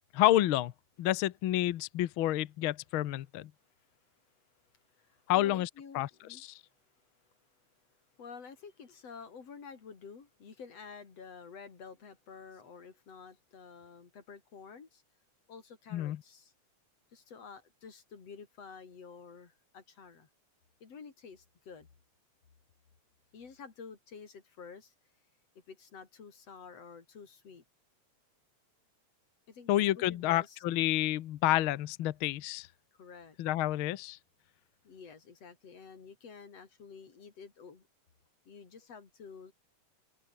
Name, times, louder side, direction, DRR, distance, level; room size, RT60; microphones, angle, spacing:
voice 1, 0.1-0.7 1.0-3.5 5.3-5.7 5.9-6.1 6.4-6.6 15.9-16.2 29.7-32.7 33.4-34.2, left 14 dB, 75° left, 1.2 m, -29 dB
voice 2, 4.6-6.4 8.1-15.0 15.5-16.5 17.1-20.3 20.8-21.9 23.3-24.9 25.7-27.6 29.5-30.6 32.9-33.4 34.8-37.9 38.5-39.5, left 5 dB, 55° left, 4.5 m, -50 dB
open air
omnidirectional pair, 3.4 m